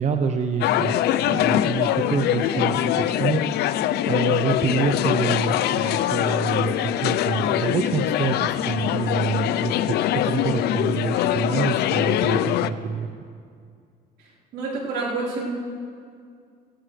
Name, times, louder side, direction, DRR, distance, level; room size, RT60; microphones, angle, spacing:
voice 1, 0.0-3.8 4.1-13.1, right 5 dB, 45° right, 6 dB, 0.7 m, -27 dB
sound 1, 0.6-12.7, left 12 dB, 75° left, 0.5 m, -23 dB
voice 2, 14.2-15.5, right 3 dB, 80° right, -6 dB, 4.2 m, -29 dB
17.0 x 14.0 x 3.3 m, 2.2 s
cardioid pair, 110°, 17 cm